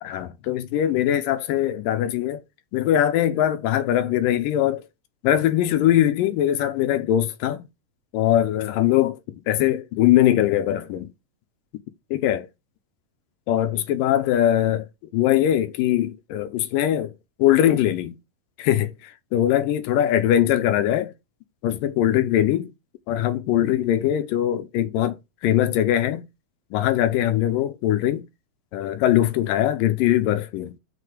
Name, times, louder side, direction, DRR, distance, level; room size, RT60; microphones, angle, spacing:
voice 1, 0.0-2.4 2.7-4.8 5.2-7.7 8.1-9.2 9.5-11.1 12.1-12.5 13.5-14.9 15.1-17.1 17.4-18.2 18.6-21.1 21.6-22.7 23.1-25.2 25.4-26.2 26.7-28.3 28.7-30.7, left 12 dB, 85° left, 2.4 m, -21 dB
6.6 x 4.5 x 5.1 m
omnidirectional pair, 3.9 m